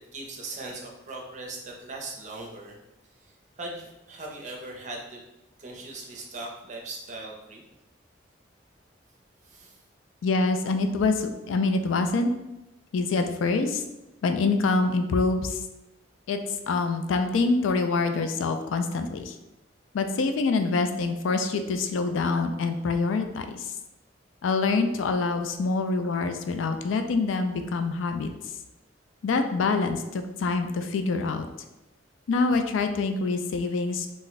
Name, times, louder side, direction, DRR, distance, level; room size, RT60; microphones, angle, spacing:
voice 1, 0.1-2.8 3.2-5.2 5.6-7.6 9.4-9.8, right 2 dB, 40° right, -1 dB, 0.5 m, -39 dB
voice 2, 10.2-12.3 12.9-13.8 14.2-15.6 16.3-16.4 16.7-19.4 19.9-23.7 24.4-28.3 29.2-31.5 32.3-34.1, left 3 dB, 85° left, 7 dB, 0.3 m, -25 dB
2.5 x 2.1 x 3.9 m, 0.97 s
head